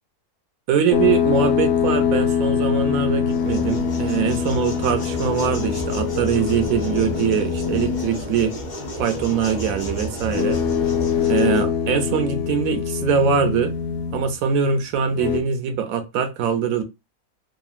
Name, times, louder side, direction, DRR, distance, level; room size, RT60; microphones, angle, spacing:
voice 1, 0.7-8.5 9.0-10.6 11.3-13.7 14.1-16.8, right 7 dB, 70° right, 1.0 m, -22 dB
sound 1, 0.9-8.2 10.2-14.4 15.1-15.4, left 8 dB, 90° left, 1.1 m, -23 dB
sound 2, 3.2-11.7, equal, 55° left, 0.5 m, -31 dB
2.9 x 2.5 x 2.4 m
omnidirectional pair, 1.6 m